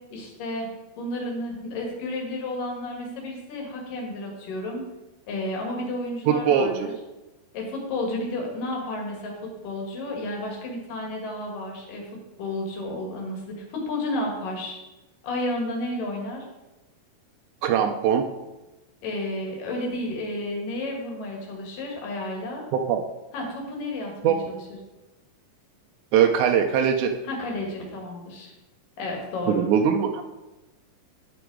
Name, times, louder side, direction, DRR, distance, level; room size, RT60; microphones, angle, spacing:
voice 1, 0.1-0.7 1.0-4.8 5.3-6.9 7.5-9.3 9.6-12.0 12.4-13.4 13.7-14.8 15.2-16.5 19.0-22.6 23.3-24.6 27.3-28.5 29.0-29.6, left 1 dB, 70° left, 0 dB, 3.5 m, -31 dB
voice 2, 6.3-6.9 17.6-18.3 22.7-23.0 24.2-24.4 26.1-27.1 29.5-30.2, right 8 dB, 80° right, 4 dB, 1.7 m, -21 dB
11.5 x 6.1 x 4.7 m, 1.1 s
omnidirectional pair, 4.1 m